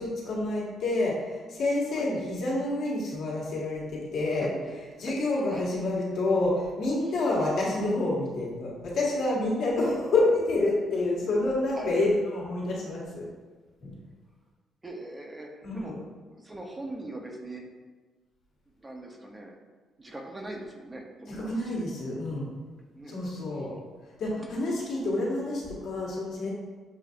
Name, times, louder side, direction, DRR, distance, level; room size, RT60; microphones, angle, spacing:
voice 1, 0.0-4.5 5.0-13.3 13.8-14.0 15.6-16.0 21.3-22.5 23.1-23.7 24.2-26.5, left 2 dB, 70° left, -5 dB, 1.5 m, -28 dB
voice 2, 14.8-15.9 16.3-17.6 18.8-19.5 20.0-21.8 23.0-23.2 24.4-24.6, right 1 dB, 20° right, 0 dB, 0.7 m, -41 dB
6.9 x 2.6 x 2.5 m, 1.3 s
cardioid pair, 90°, 0 cm